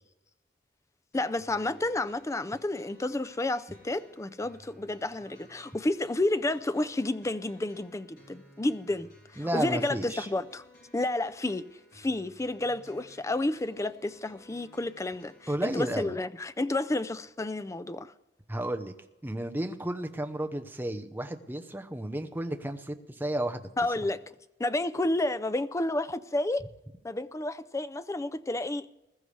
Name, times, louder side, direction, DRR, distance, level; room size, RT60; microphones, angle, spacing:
sound 1, 1.1-16.1, left 1 dB, 60° left, 6.0 m, -57 dB
voice 1, 1.1-10.6 10.9-11.7 11.9-18.1 23.8-24.2 24.6-26.6 27.0-28.9, left 2 dB, 15° left, 0.4 m, -31 dB
voice 2, 9.4-10.3 15.5-16.2 18.5-18.9 19.2-23.7, right 1 dB, 10° right, 0.8 m, -32 dB
20.5 x 13.0 x 3.3 m
head